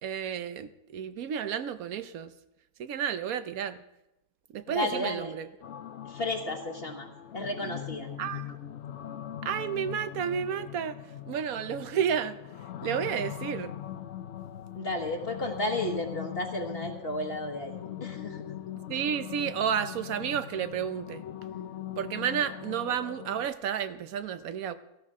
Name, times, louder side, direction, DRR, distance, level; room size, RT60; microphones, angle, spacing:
voice 1, 0.0-2.3 2.8-3.8 4.5-5.5 8.2-8.5 9.4-11.0 11.3-12.4 12.8-13.7 18.9-21.2 22.0-24.7, right 8 dB, 75° right, 12 dB, 1.2 m, -31 dB
voice 2, 4.7-5.3 6.0-8.1 14.7-17.7 18.0-18.4, left 1 dB, 45° left, 3 dB, 1.4 m, -33 dB
sound 1, 5.6-23.5, left 11 dB, 60° left, 0.9 m, -41 dB
17.0 x 15.5 x 3.7 m, 0.91 s
omnidirectional pair, 1.5 m